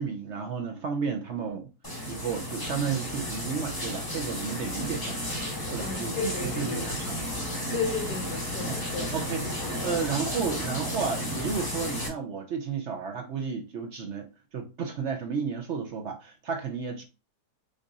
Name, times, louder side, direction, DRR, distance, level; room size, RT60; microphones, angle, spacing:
voice 1, 0.0-1.7 2.1-5.2 5.7-7.3 7.7-7.8 8.6-8.8 9.1-9.4 9.8-17.0, right 6 dB, 60° right, 0.8 m, -32 dB
sound 1, 1.8-12.1, left 1 dB, 15° left, 1.4 m, -33 dB
voice 2, 5.8-7.1 7.7-9.2, left 4 dB, 85° left, 2.6 m, -34 dB
5.2 x 2.5 x 4.0 m
omnidirectional pair, 1.7 m